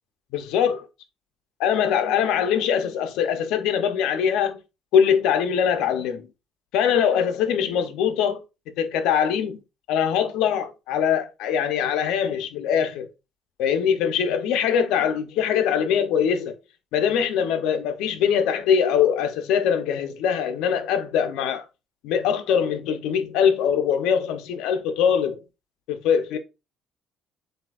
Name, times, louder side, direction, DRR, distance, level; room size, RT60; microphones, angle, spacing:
voice 1, 0.3-0.8 1.6-4.6 4.9-6.2 6.7-8.4 8.8-9.6 9.9-13.1 13.6-16.5 16.9-21.6 22.0-25.4 25.9-26.4, left 8 dB, 80° left, 0.7 m, -22 dB
7.5 x 2.7 x 2.4 m
cardioid pair, 165°, 0 cm